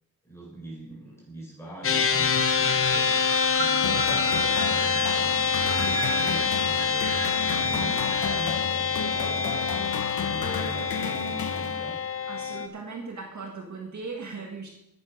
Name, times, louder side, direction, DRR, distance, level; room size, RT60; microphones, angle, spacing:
voice 1, 0.2-12.0, right 1 dB, 5° left, -5 dB, 5.6 m, -42 dB
sound 1, 1.8-12.7, left 6 dB, 35° left, 0.8 m, -26 dB
Wind, 2.1-8.5, right 6 dB, 70° right, 1.4 m, -37 dB
sound 2, 3.8-12.2, left 5 dB, 70° left, 1.3 m, -33 dB
voice 2, 12.3-14.7, right 4 dB, 50° right, 1 dB, 1.7 m, -38 dB
10.0 x 9.7 x 6.4 m, 0.86 s
wide cardioid pair, 160°, 37 cm